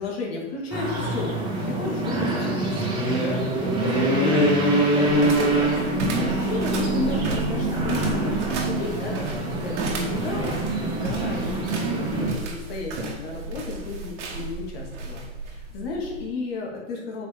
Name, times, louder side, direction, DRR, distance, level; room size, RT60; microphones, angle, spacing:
voice 1, 0.0-9.3 9.6-17.3, left 3 dB, 45° left, -1 dB, 2.4 m, -33 dB
sound 1, 0.7-12.3, right 1 dB, 10° right, 1.6 m, -24 dB
sound 2, 5.1-16.3, right 3 dB, 60° right, 1.7 m, -33 dB
8.6 x 5.6 x 3.6 m, 1.1 s
hypercardioid pair, 145°, 40 cm